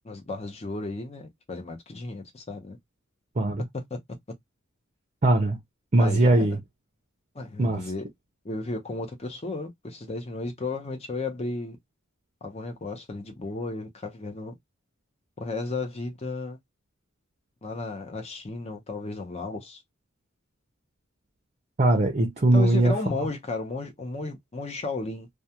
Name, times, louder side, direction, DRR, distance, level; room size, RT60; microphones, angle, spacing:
voice 1, 0.0-2.8 3.7-4.0 6.0-6.5 7.3-8.0 8.4-11.8 12.4-14.5 15.4-16.6 17.6-19.8 22.5-25.3, left 3 dB, 30° left, 0.7 m, -34 dB
voice 2, 5.2-5.6 5.9-6.6 7.6-7.9 21.8-23.3, right 1 dB, 35° right, 0.5 m, -21 dB
2.3 x 2.2 x 2.8 m
head